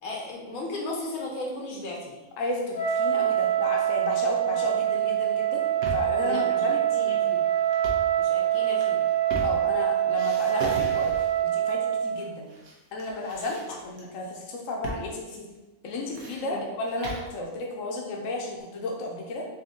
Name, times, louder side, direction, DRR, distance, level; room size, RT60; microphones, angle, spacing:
voice 1, 0.0-2.2 6.2-6.6 6.9-7.5 8.2-9.0 16.4-16.6, left 2 dB, 90° left, -2 dB, 1.4 m, -35 dB
voice 2, 2.4-5.6 5.9-6.8 9.4-12.5 12.9-15.5 15.8-19.5, left 2 dB, 70° left, 0 dB, 1.0 m, -33 dB
Wind instrument woodwind instrument, 2.7-12.1, right 11 dB, 45° left, 0.7 m, -25 dB
sound 1, 5.4-6.2 7.7-8.1 8.7-9.8 10.1-11.4 12.2-12.7 13.0-14.0 14.8-15.1 15.3-15.4 15.9-17.3, right 1 dB, 85° right, 1.3 m, -37 dB
4.2 x 2.7 x 3.7 m, 1.1 s
omnidirectional pair, 1.5 m